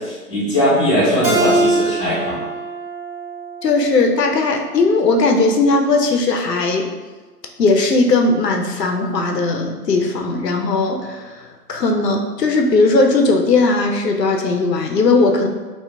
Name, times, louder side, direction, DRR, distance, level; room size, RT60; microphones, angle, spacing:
voice 1, 0.0-2.4, equal, 20° left, -9 dB, 0.7 m, -19 dB
Keyboard (musical), 1.2-4.5, right 2 dB, 35° right, 0.6 m, -23 dB
voice 2, 3.6-6.9 7.6-15.5, left 3 dB, 80° left, 3 dB, 0.6 m, -17 dB
2.7 x 2.1 x 3.4 m, 1.3 s
figure-of-eight pair, 135°, 48 cm